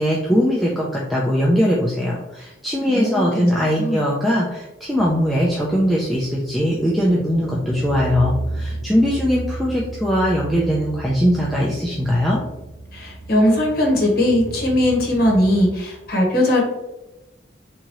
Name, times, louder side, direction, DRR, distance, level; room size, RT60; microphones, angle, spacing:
voice 1, 0.0-12.4, equal, ahead, -5 dB, 0.3 m, -20 dB
voice 2, 2.9-4.0 12.9-16.6, left 1 dB, 50° left, -1 dB, 0.9 m, -19 dB
sound 1, 4.9-15.7, right 2 dB, 50° right, 0.8 m, -33 dB
3.6 x 2.9 x 2.9 m, 0.98 s
head